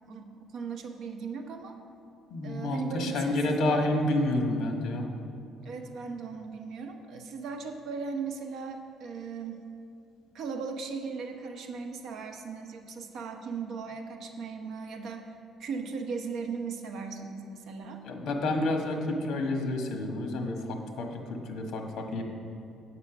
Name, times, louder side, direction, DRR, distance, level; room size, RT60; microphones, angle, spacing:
voice 1, 0.1-1.8 2.4-3.9 5.6-9.6 10.3-15.3 15.6-18.0, right 5 dB, 55° right, 4 dB, 1.0 m, -37 dB
voice 2, 2.3-5.1 18.0-22.2, left 1 dB, 55° left, 2 dB, 1.5 m, -29 dB
8.5 x 8.2 x 6.0 m, 2.6 s
cardioid pair, 160°, 0 cm